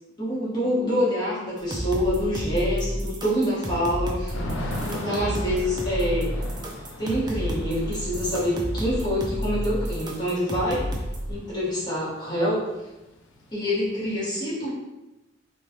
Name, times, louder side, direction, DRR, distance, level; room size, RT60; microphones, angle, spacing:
voice 1, 0.2-4.4 4.9-6.4 7.0-10.8 11.3-12.6 13.5-14.7, equal, 20° left, -9 dB, 1.1 m, -26 dB
sound 1, 1.6-11.3, right 1 dB, 20° right, 0.3 m, -31 dB
Thunder / Rain, 4.3-12.1 12.4-12.5 12.8-14.1, left 1 dB, 65° left, 0.4 m, -38 dB
3.1 x 2.3 x 2.7 m, 1.0 s
head